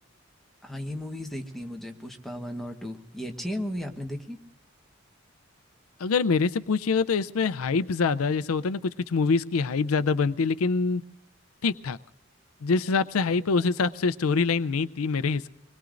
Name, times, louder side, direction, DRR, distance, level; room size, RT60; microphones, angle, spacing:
voice 1, 0.6-4.4, equal, ahead, 2 dB, 1.1 m, -35 dB
voice 2, 6.0-11.0 11.6-12.0 12.6-15.5, left 4 dB, 85° left, 14 dB, 0.5 m, -25 dB
26.0 x 21.0 x 2.5 m, 0.85 s
head